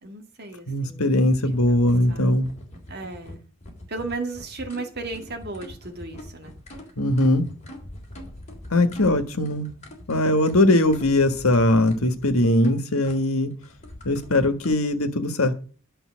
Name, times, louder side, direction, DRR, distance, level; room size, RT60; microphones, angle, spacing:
voice 1, 0.0-1.1 1.7-2.3 2.9-3.4 3.9-6.5 14.1-14.2, right 3 dB, 50° right, 2.1 m, -35 dB
voice 2, 0.7-2.5 7.0-7.5 8.7-9.7 10.1-13.5 14.0-15.5, left 1 dB, 85° left, 1.6 m, -20 dB
sound 1, 1.1-14.8, left 1 dB, 35° left, 3.3 m, -43 dB
11.0 x 5.6 x 6.4 m
head